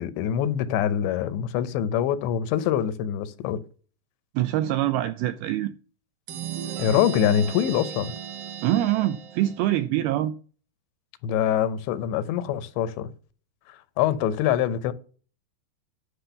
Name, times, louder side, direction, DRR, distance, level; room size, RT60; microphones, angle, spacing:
voice 1, 0.0-3.6 6.8-8.1 11.2-13.1 13.7-14.9, left 10 dB, 90° left, 3.1 m, -24 dB
voice 2, 4.4-5.7 8.6-10.3, right 14 dB, 85° right, 2.2 m, -24 dB
sound 1, 6.3-9.8, right 9 dB, 70° right, 2.1 m, -36 dB
10.0 x 6.0 x 6.8 m
omnidirectional pair, 5.0 m